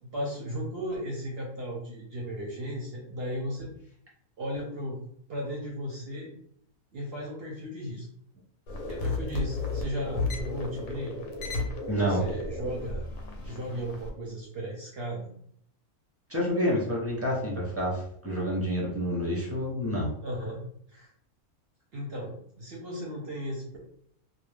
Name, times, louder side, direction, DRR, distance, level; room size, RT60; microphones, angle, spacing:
voice 1, 0.0-3.7 4.4-5.0 5.3-6.3 6.9-8.1 8.9-11.2 11.9-13.0 13.5-15.3 20.2-20.6 20.9-21.1 21.9-23.8, equal, 60° right, -2 dB, 0.7 m, -35 dB
sound 1, 8.7-14.1, left 2 dB, 70° left, 0.9 m, -33 dB
voice 2, 11.9-12.2 16.3-20.1, equal, 20° right, -5 dB, 0.4 m, -28 dB
2.6 x 2.1 x 3.2 m, 0.66 s
omnidirectional pair, 1.6 m